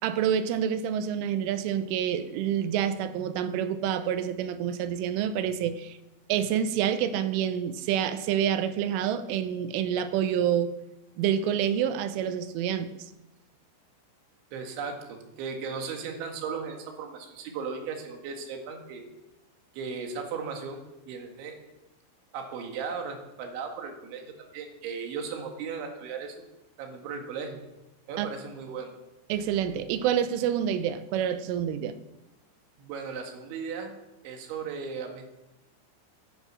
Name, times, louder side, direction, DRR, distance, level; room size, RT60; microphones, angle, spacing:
voice 1, 0.0-6.0 6.3-10.7 11.2-12.9 28.2-28.3 29.3-32.0, right 9 dB, 85° right, 11 dB, 3.3 m, -27 dB
voice 2, 14.5-19.0 19.7-21.6 22.3-26.4 26.8-27.6 28.1-28.9 32.8-33.9 34.2-35.3, right 5 dB, 70° right, 4 dB, 4.2 m, -36 dB
16.5 x 10.5 x 6.0 m, 0.97 s
omnidirectional pair, 5.7 m